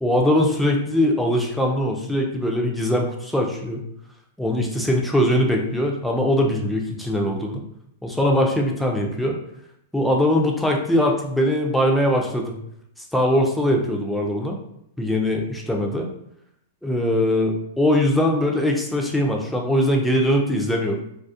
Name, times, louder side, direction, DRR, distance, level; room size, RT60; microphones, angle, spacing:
voice 1, 0.0-3.8 4.4-7.6 8.0-9.4 9.9-12.5 13.1-14.6 15.0-16.1 16.8-21.0, left 1 dB, 5° left, 0 dB, 0.3 m, -21 dB
2.3 x 2.0 x 2.6 m, 0.75 s
hypercardioid pair, 145°, 0 cm